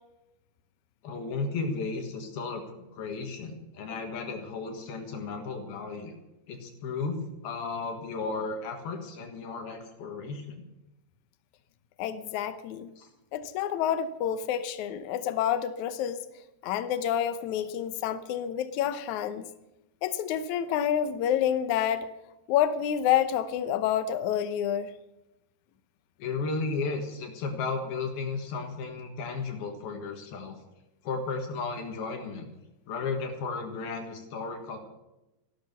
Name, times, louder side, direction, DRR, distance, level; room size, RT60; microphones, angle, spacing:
voice 1, 1.0-6.1 6.5-10.6 13.0-13.1 26.2-30.6 31.0-32.5 32.9-34.8, left 4 dB, 70° left, 4 dB, 3.5 m, -34 dB
voice 2, 12.0-12.9 13.3-16.2 16.6-19.5 20.0-22.1 22.5-24.9, left 9 dB, 85° left, 11 dB, 1.7 m, -28 dB
15.5 x 12.0 x 6.9 m, 0.96 s
omnidirectional pair, 4.7 m